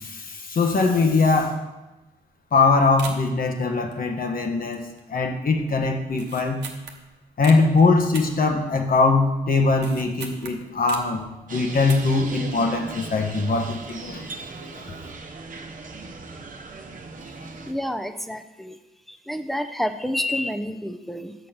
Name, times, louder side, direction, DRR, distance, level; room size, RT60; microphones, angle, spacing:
voice 1, 0.0-1.6 2.5-4.8 5.1-6.6 7.4-11.2 11.5-14.2 14.6-15.0, left 3 dB, 55° left, 3 dB, 1.2 m, -21 dB
sound 1, 2.0-2.2 2.5-2.6 3.0-3.4 3.9-4.4 4.7-5.1 5.4-5.5 6.1-7.6 8.1-9.0 9.4-11.2 11.7-12.3 12.5-12.6, right 6 dB, 85° right, 0.8 m, -40 dB
sound 2, 11.5-17.7, right 3 dB, 50° right, 0.9 m, -38 dB
voice 2, 17.7-18.8 19.1-21.5, left 1 dB, ahead, 8 dB, 0.7 m, -29 dB
6.4 x 5.4 x 5.8 m, 1.0 s
supercardioid pair, 45°, 17 cm